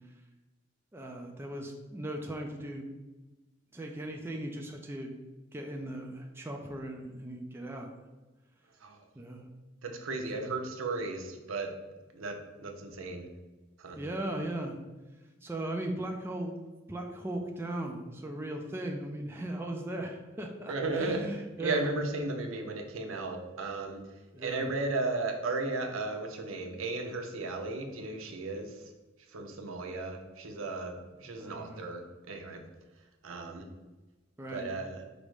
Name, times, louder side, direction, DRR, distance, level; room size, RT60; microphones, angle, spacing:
voice 1, 0.9-2.9 3.7-5.1 5.5-7.9 9.2-9.5 10.4-10.6 14.0-14.8 15.4-16.6 16.9-21.9 24.3-24.7 31.4-31.9 34.4-34.7, right 1 dB, 10° right, 2 dB, 0.4 m, -38 dB
voice 2, 9.8-11.7 12.1-13.3 13.8-14.1 20.7-21.2 21.6-24.0 24.4-28.7 29.3-32.6 33.2-33.7 34.5-35.0, right 3 dB, 80° right, 3 dB, 0.6 m, -35 dB
5.1 x 2.1 x 4.7 m, 1.1 s
head